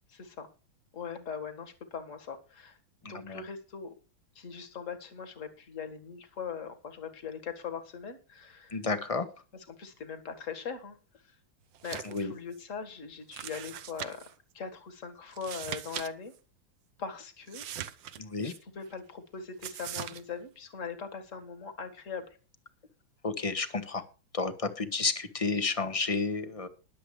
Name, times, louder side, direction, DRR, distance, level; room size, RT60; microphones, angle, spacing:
voice 1, 0.1-0.5 0.9-2.8 3.0-4.0 4.4-8.8 9.7-11.0 11.8-14.2 14.5-16.3 17.0-17.7 18.4-22.4, left 6 dB, 40° left, 7 dB, 2.0 m, -41 dB
voice 2, 3.0-3.4 8.7-9.3 12.0-12.3 18.2-18.5 23.2-24.0 24.3-26.7, left 4 dB, 20° left, 9 dB, 1.0 m, -31 dB
sound 1, 11.7-12.2 12.5-12.6 13.3-14.3 15.3-16.1 16.3-16.4 17.5-18.6 19.6-20.2, right 10 dB, 70° right, 1.5 m, -40 dB
21.0 x 7.7 x 3.2 m, 0.34 s
omnidirectional pair, 2.3 m